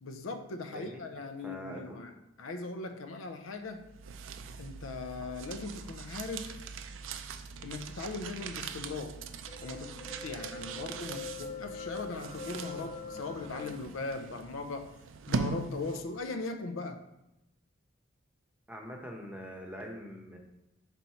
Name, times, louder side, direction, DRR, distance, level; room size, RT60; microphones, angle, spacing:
voice 1, 0.0-2.1 2.4-3.8 4.6-6.6 7.6-9.2 9.6-14.9 15.3-17.0, left 3 dB, 80° left, 8 dB, 0.5 m, -39 dB
voice 2, 0.7-1.0 1.4-2.0 18.7-20.4, equal, 5° right, 0 dB, 0.8 m, -43 dB
sound 1, 3.7-16.2, right 4 dB, 70° right, 0.4 m, -41 dB
sound 2, 9.5-13.8, left 4 dB, 30° left, 0.5 m, -43 dB
4.4 x 4.0 x 5.6 m, 0.90 s
head